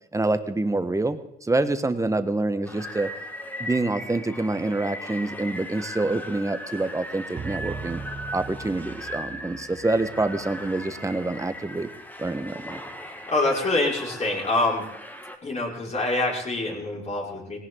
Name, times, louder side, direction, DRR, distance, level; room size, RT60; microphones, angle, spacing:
voice 1, 0.1-3.1 3.6-8.0 8.3-11.9 12.2-12.8, right 2 dB, 15° right, 9 dB, 1.4 m, -26 dB
sound 1, 2.7-15.4, equal, 10° left, 1.9 m, -38 dB
sound 2, 7.4-11.8, right 5 dB, 35° right, 1.5 m, -40 dB
voice 2, 13.3-14.8 15.4-17.6, left 2 dB, 35° left, -2 dB, 5.8 m, -25 dB
19.5 x 17.5 x 4.0 m, 0.79 s
cardioid pair, 90°, 20 cm